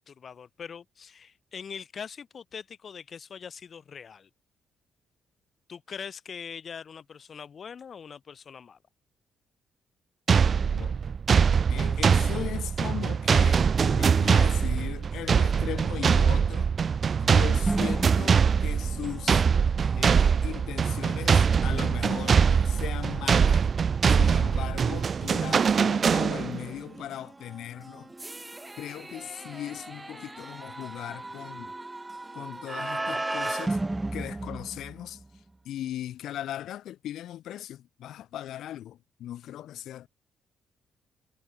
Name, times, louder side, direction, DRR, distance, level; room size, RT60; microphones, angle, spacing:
voice 1, 0.0-4.3 5.7-8.8, left 6 dB, 50° left, 5.5 m, -42 dB
sound 1, 10.3-26.7, right 6 dB, 45° right, 0.3 m, -23 dB
voice 2, 11.7-16.7 17.2-19.4 20.0-23.7 24.1-28.1 28.8-31.7 32.3-33.8 34.1-35.2 35.6-40.1, left 12 dB, 75° left, 2.6 m, -38 dB
sound 2, 17.7-35.4, right 2 dB, 15° right, 7.5 m, -37 dB
cardioid pair, 90°, 0 cm